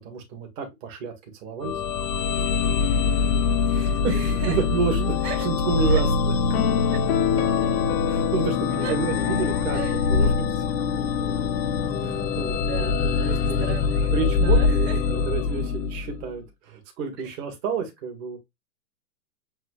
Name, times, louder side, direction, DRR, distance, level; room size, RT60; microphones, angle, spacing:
voice 1, 0.0-1.7 3.7-4.1 4.5-5.1 5.4-6.6 8.0-10.6 12.0-13.7 14.1-18.4, right 5 dB, 35° right, 1.8 m, -30 dB
sound 1, 1.6-16.3, left 5 dB, 85° left, 0.9 m, -24 dB
voice 2, 3.7-4.6 5.2-5.5 5.9-6.0 6.9-7.0 8.8-8.9 9.7-10.0 12.3-13.3 13.6-15.0 17.2-17.3, right 7 dB, 80° right, 1.9 m, -37 dB
sound 2, 6.5-10.0, left 12 dB, 40° left, 0.6 m, -28 dB
7.6 x 2.9 x 2.3 m
hypercardioid pair, 140°, 48 cm